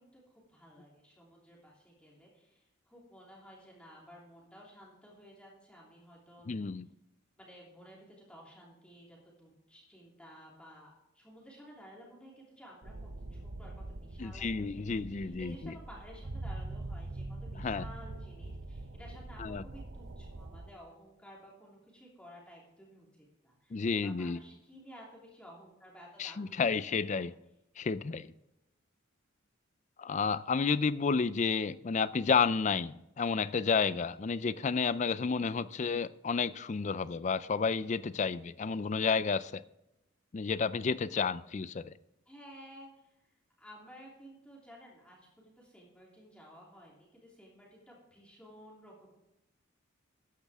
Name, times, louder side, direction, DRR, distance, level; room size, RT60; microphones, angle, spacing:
voice 1, 0.0-6.6 7.4-26.6 26.9-27.3 42.3-42.9 43.6-49.1, equal, 5° left, 2.9 m, -54 dB
voice 2, 6.5-6.9 14.2-15.7 17.6-17.9 19.4-19.6 23.7-24.4 26.2-27.3 27.8-28.3 30.0-39.6 40.3-41.9, left 5 dB, 35° left, 0.4 m, -31 dB
sound 1, 12.8-20.7, right 2 dB, 50° right, 0.8 m, -43 dB
13.5 x 9.7 x 3.5 m
head